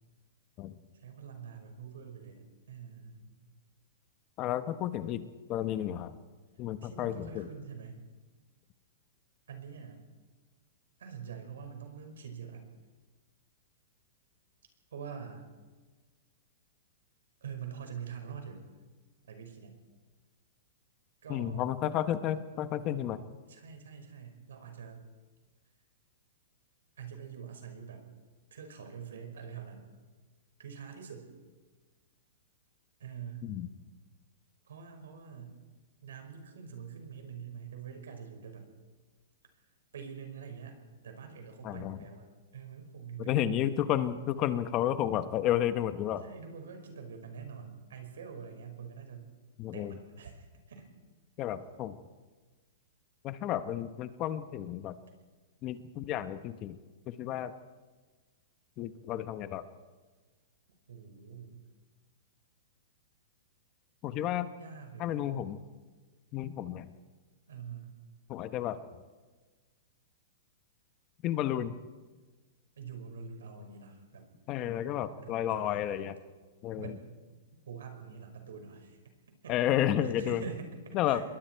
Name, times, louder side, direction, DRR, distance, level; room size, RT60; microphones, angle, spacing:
voice 1, 0.9-3.4 6.8-8.0 9.5-10.0 11.0-12.7 14.9-15.5 17.4-18.6 19.3-19.8 21.2-22.2 23.5-25.1 27.0-28.1 28.5-29.9 30.6-31.3 33.0-33.5 34.6-35.6 36.0-38.7 39.9-40.8 41.0-42.3 42.5-43.4 46.2-49.3 49.7-50.9 60.9-61.6 64.6-65.3 67.5-67.9 72.8-74.3 75.2-75.8 76.8-79.0 79.4-79.6 80.0-81.2, right 6 dB, 85° right, 5 dB, 5.4 m, -45 dB
voice 2, 4.4-5.2 5.5-6.2 6.6-7.5 21.3-23.2 33.4-33.7 41.6-42.0 43.2-46.2 49.6-50.0 51.4-52.0 53.2-54.9 55.6-56.8 57.1-57.5 58.8-59.6 64.0-64.5 65.0-65.6 66.3-66.9 68.3-68.8 71.2-71.8 74.5-76.2 76.6-76.9 79.5-80.4 80.9-81.2, left 11 dB, 25° left, 11 dB, 0.9 m, -31 dB
27.0 x 21.5 x 4.6 m, 1.3 s
hypercardioid pair, 160°, 0 cm